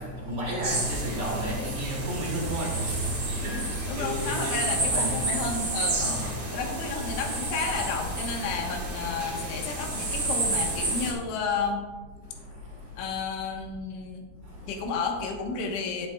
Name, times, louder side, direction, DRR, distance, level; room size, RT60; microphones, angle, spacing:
voice 1, 0.0-5.4 6.0-6.6 12.2-13.1 14.4-14.8, equal, 20° right, -6 dB, 3.0 m, -34 dB
sound 1, 0.6-11.1, right 2 dB, 45° right, 1.3 m, -30 dB
voice 2, 3.9-6.2 6.5-11.9 13.0-14.2 14.7-16.1, left 4 dB, 80° left, 2 dB, 3.8 m, -31 dB
18.0 x 7.5 x 2.4 m, 1.3 s
omnidirectional pair, 5.6 m